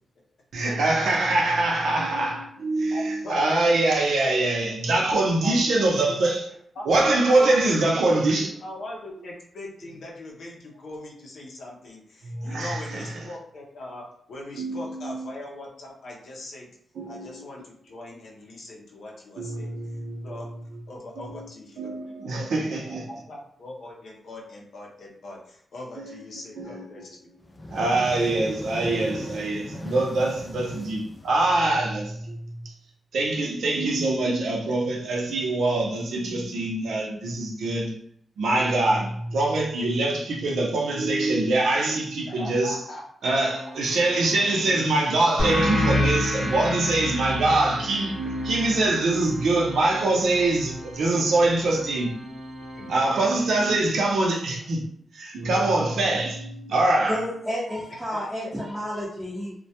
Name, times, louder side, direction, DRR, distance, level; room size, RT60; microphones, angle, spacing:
voice 1, 0.5-6.5 6.9-8.5 12.2-13.1 14.6-15.3 16.9-17.5 19.4-20.4 21.2-21.5 21.8-23.1 26.0-26.2 26.6-26.9 27.7-32.7 33.1-38.0 38.4-42.8 43.2-52.1 52.9-54.8 55.1-57.2, right 2 dB, 85° right, 0.5 m, -24 dB
voice 2, 2.9-3.4 5.4-6.3 6.8-8.2 8.6-16.7 17.1-19.8 20.2-20.5 20.9-21.9 22.3-27.3 42.3-43.0 49.8-49.9 50.2-50.3 52.6-53.0 53.7-53.8 55.5-56.3 58.1-58.2, left 1 dB, 75° left, 0.5 m, -40 dB
sound 1, 27.4-32.0, left 1 dB, 25° left, 0.3 m, -38 dB
Organ, 43.2-54.0, right 1 dB, 45° right, 0.9 m, -43 dB
sound 2, 45.4-50.6, left 1 dB, 50° left, 0.9 m, -28 dB
voice 3, 57.1-59.5, equal, 5° right, 0.7 m, -31 dB
2.1 x 2.1 x 2.7 m
cardioid pair, 95°, 0 cm